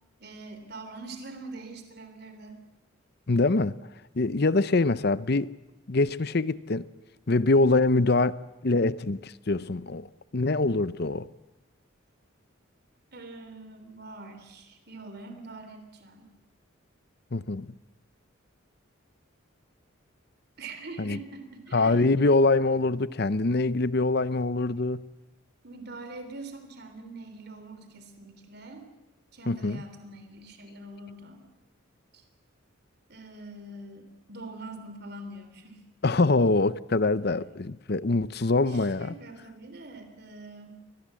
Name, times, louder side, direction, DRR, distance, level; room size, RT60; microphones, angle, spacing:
voice 1, 0.2-2.6 13.1-16.3 20.6-22.2 25.6-28.9 29.3-31.4 32.1-32.2 33.1-35.8 38.6-40.7, right 2 dB, 50° right, 3.4 m, -44 dB
voice 2, 3.3-3.8 4.2-5.5 5.9-6.9 7.3-10.1 10.3-11.3 17.3-17.7 21.0-21.2 21.7-25.0 29.5-29.8 36.0-39.1, left 3 dB, 50° left, 0.7 m, -24 dB
24.5 x 20.0 x 7.6 m
head